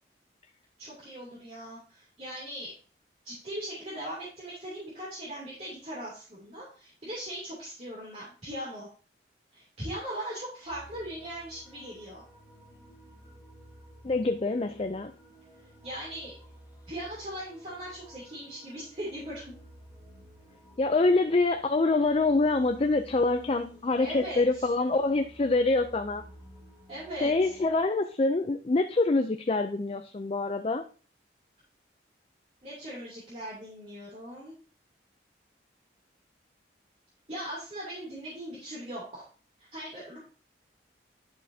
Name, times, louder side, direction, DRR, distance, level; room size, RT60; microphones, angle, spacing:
voice 1, 0.8-2.7 3.2-8.9 9.5-12.2 15.8-16.3 16.9-19.4 24.0-24.7 26.9-27.3 32.6-34.5 37.3-39.3 39.7-40.2, right 1 dB, 35° right, 2.8 m, -39 dB
sound 1, 10.6-27.8, equal, 10° right, 3.5 m, -53 dB
voice 2, 14.0-15.1 20.8-26.2 27.2-30.9, left 3 dB, 30° left, 0.4 m, -25 dB
10.5 x 6.3 x 2.8 m
head